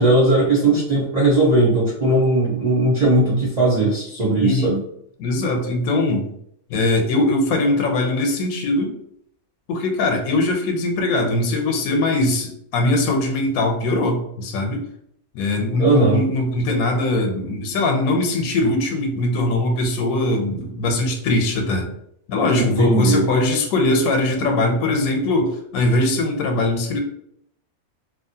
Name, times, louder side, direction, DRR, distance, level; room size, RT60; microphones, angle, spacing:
voice 1, 0.0-4.8 15.8-16.2 22.6-23.2, right 2 dB, 45° right, -6 dB, 0.5 m, -18 dB
voice 2, 4.4-4.8 5.2-6.3 6.7-8.9 9.7-14.8 15.3-21.9 22.3-27.0, left 2 dB, 85° left, 3 dB, 1.1 m, -21 dB
2.9 x 2.4 x 2.7 m, 0.72 s
omnidirectional pair, 1.5 m